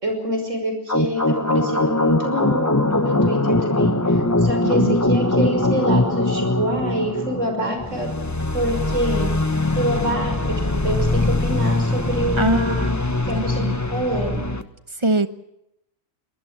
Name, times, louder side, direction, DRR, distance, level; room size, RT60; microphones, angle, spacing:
voice 1, 0.0-8.1 8.5-13.6 13.9-14.5, equal, 65° right, 5 dB, 6.2 m, -26 dB
sound 1, 0.9-14.6, left 2 dB, 15° left, 1.1 m, -21 dB
voice 2, 4.6-5.0 12.4-12.9 13.3-13.8 15.0-15.3, right 2 dB, 25° right, 12 dB, 1.0 m, -23 dB
24.0 x 19.5 x 7.6 m, 0.82 s
omnidirectional pair, 1.4 m